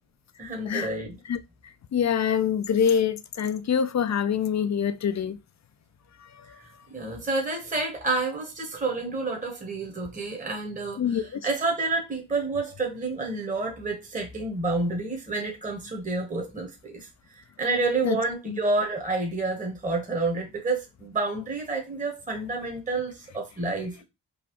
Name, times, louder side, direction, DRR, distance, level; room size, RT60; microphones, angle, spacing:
voice 1, 0.4-1.2 6.9-17.1 17.6-24.0, right 3 dB, 15° right, 1.1 m, -29 dB
voice 2, 1.9-5.4 11.0-11.4 18.0-18.2 18.5-18.6, left 8 dB, 40° left, 0.5 m, -25 dB
3.9 x 2.3 x 3.0 m
supercardioid pair, 45°, 44 cm